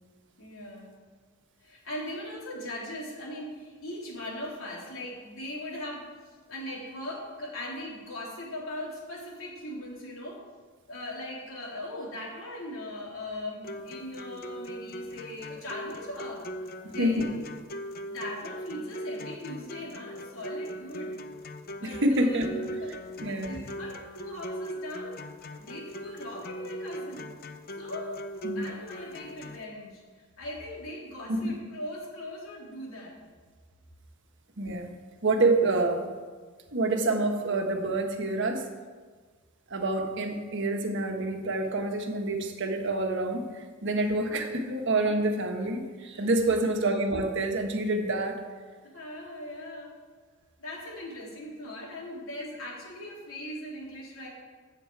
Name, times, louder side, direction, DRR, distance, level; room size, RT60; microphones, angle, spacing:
voice 1, 0.4-1.0 1.6-6.1 6.5-10.4 10.9-17.4 18.1-21.1 21.8-22.4 22.8-25.2 25.6-27.3 27.8-28.2 28.5-30.0 30.4-33.1 44.2-44.5 46.1-46.3 48.8-49.9 50.6-54.3, left 1 dB, 80° left, -3 dB, 3.1 m, -40 dB
sound 1, 13.6-29.6, equal, 45° left, 0.7 m, -40 dB
voice 2, 16.8-17.4 21.8-22.8 23.2-23.6 28.4-28.7 31.3-31.6 34.6-34.9 35.2-36.1 36.7-38.7 39.7-48.4, right 2 dB, 60° right, 4 dB, 1.2 m, -27 dB
15.5 x 7.0 x 4.7 m, 1.5 s
head